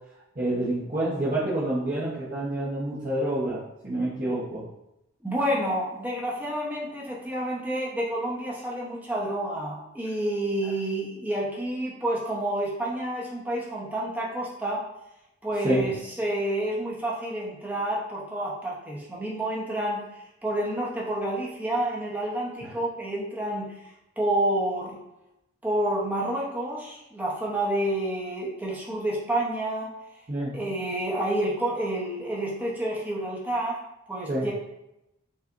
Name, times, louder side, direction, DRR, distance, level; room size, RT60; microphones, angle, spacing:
voice 1, 0.4-4.6 15.6-15.9 22.6-22.7 30.3-30.6 34.3-34.5, right 1 dB, 40° right, -10 dB, 1.0 m, -28 dB
voice 2, 5.2-14.8 15.4-23.7 24.2-25.0 25.6-29.9 30.5-33.8 34.1-34.5, right 1 dB, 10° right, -4 dB, 0.9 m, -29 dB
5.5 x 3.3 x 2.6 m, 0.88 s
head